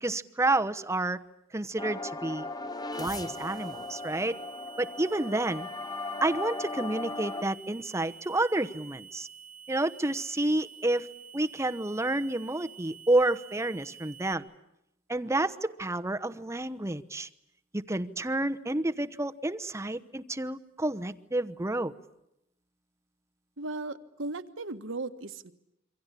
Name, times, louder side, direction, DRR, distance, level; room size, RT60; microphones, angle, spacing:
voice 1, 0.0-1.2 1.5-2.5 3.0-4.4 4.8-5.7 6.2-9.3 9.7-11.1 11.3-14.4 15.1-17.3 17.7-21.9, right 2 dB, 15° right, 9 dB, 1.0 m, -29 dB
sound 1, 1.8-7.4, left 3 dB, 20° left, 1.0 m, -37 dB
sound 2, 2.9-14.3, right 8 dB, 45° right, 1.5 m, -49 dB
voice 2, 23.6-25.5, right 2 dB, 70° right, 9 dB, 1.5 m, -36 dB
27.5 x 25.0 x 8.3 m, 0.83 s
head